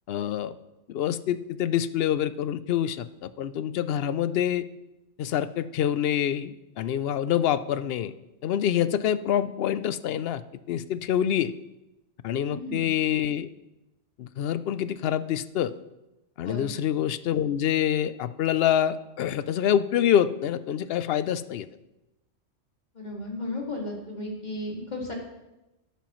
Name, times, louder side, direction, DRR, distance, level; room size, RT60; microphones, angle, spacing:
voice 1, 0.1-0.5 0.9-4.6 5.2-8.1 8.4-10.4 10.7-11.5 12.2-13.5 14.2-15.7 16.4-21.7, left 10 dB, 65° left, 14 dB, 0.7 m, -26 dB
voice 2, 12.4-12.9 16.4-16.7 22.9-25.1, left 1 dB, 40° left, -1 dB, 2.3 m, -34 dB
12.5 x 11.5 x 3.1 m, 0.98 s
omnidirectional pair, 1.2 m